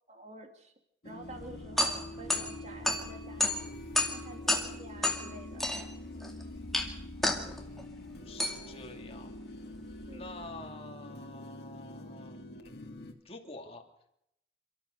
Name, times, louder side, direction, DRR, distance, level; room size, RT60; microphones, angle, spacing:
voice 1, 0.1-0.7 1.0-5.7 10.1-10.3, right 1 dB, 40° right, 5 dB, 2.8 m, -49 dB
sound 1, 1.0-13.1, left 1 dB, 60° left, 2.3 m, -46 dB
sound 2, 1.3-10.4, left 2 dB, ahead, 2.3 m, -33 dB
voice 2, 7.4-9.3 10.1-13.8, left 2 dB, 30° left, 2 dB, 2.8 m, -49 dB
28.5 x 13.5 x 6.7 m, 0.77 s
head